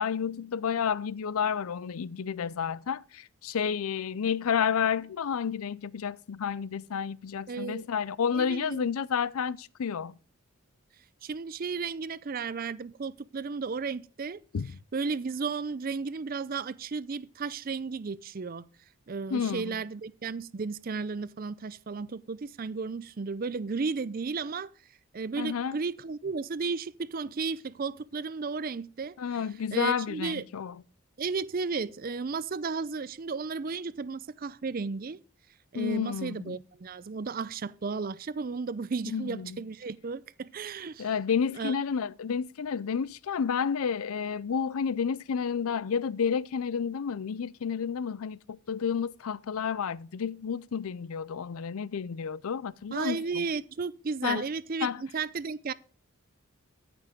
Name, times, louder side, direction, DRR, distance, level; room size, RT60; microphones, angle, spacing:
voice 1, 0.0-10.2 14.5-14.7 19.3-19.8 25.4-25.8 29.2-30.7 35.7-36.6 39.1-39.6 41.0-53.5 54.2-54.5 54.8-55.0, left 7 dB, 75° left, 0.5 m, -30 dB
voice 2, 7.5-7.8 8.3-8.8 11.2-14.4 14.9-18.7 19.1-24.7 25.1-29.2 29.7-30.4 31.2-35.2 35.7-41.1 41.6-41.7 52.9-55.7, right 4 dB, 40° right, 0.4 m, -34 dB
13.5 x 6.0 x 5.0 m
head